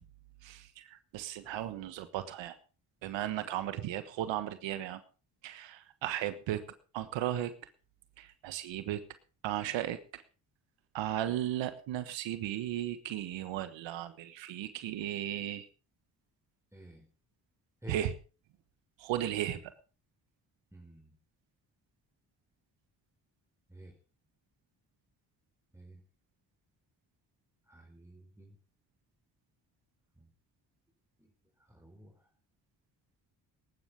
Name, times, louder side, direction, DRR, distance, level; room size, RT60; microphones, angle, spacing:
voice 1, 0.4-2.6 3.0-5.0 5.4-6.6 6.9-7.5 8.2-9.0 9.4-10.2 10.9-15.7 17.9-18.1 19.0-19.6, right 12 dB, 85° right, 11 dB, 1.4 m, -35 dB
voice 2, 16.7-17.0 17.8-18.0 20.7-21.2 23.7-24.0 25.7-26.0 27.7-28.6 30.2-30.3 31.2-31.3 31.6-32.3, right 1 dB, 5° right, 1 dB, 4.5 m, -52 dB
20.5 x 11.5 x 3.6 m, 0.35 s
supercardioid pair, 55°, 44 cm